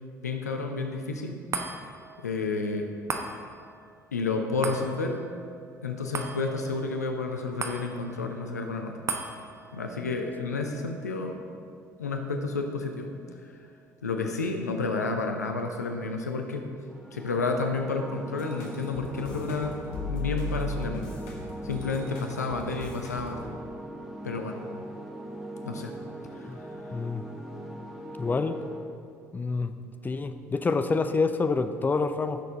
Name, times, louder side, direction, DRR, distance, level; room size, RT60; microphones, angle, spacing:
voice 1, 0.2-1.4 2.2-2.9 4.1-5.2 5.8-9.0 9.7-11.4 12.0-13.4 14.0-16.6 17.1-21.1 21.6-23.4 24.2-24.6 25.6-25.9 26.3-26.6, left 3 dB, 85° left, 4 dB, 0.7 m, -31 dB
sound 1, 1.5-14.1 14.5-14.6, right 4 dB, 35° right, 1.0 m, -40 dB
sound 2, 16.9-28.8, right 1 dB, 5° right, 2.1 m, -41 dB
sound 3, 18.4-23.5, left 2 dB, 65° left, 1.5 m, -36 dB
voice 2, 26.9-27.2 28.2-28.6 29.3-29.7 30.0-32.4, left 4 dB, 20° left, 9 dB, 0.6 m, -27 dB
14.5 x 6.6 x 3.7 m, 2.3 s
figure-of-eight pair, 55°, 9 cm